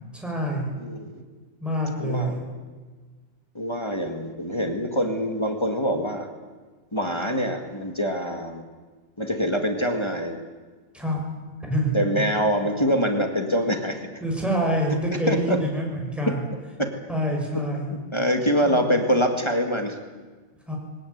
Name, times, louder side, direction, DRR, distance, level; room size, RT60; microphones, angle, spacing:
voice 1, 0.1-0.7 1.6-2.4 10.9-11.2 11.7-12.0 14.2-16.5 17.1-18.0 18.6-19.0 20.7-20.8, equal, ahead, -1 dB, 6.4 m, -26 dB
voice 2, 0.8-1.2 2.0-2.4 3.5-6.3 6.9-8.6 9.2-10.4 11.9-14.1 15.3-15.6 16.8-16.9 18.1-20.0, equal, 20° left, 4 dB, 2.0 m, -24 dB
21.5 x 18.5 x 9.6 m, 1.4 s
omnidirectional pair, 1.5 m